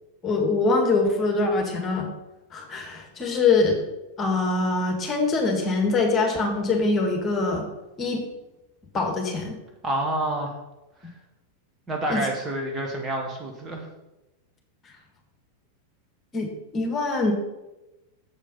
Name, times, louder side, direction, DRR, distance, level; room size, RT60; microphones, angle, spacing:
voice 1, 0.2-2.1 2.5-3.8 4.2-7.7 8.0-8.2 8.9-9.6 12.1-12.2 16.3-17.3, left 3 dB, 25° left, 2 dB, 1.8 m, -23 dB
voice 2, 9.8-10.6 11.0-11.1 11.9-13.9, right 1 dB, 20° right, 0 dB, 1.4 m, -28 dB
7.4 x 5.1 x 5.6 m, 0.98 s
figure-of-eight pair, 90°, 0 cm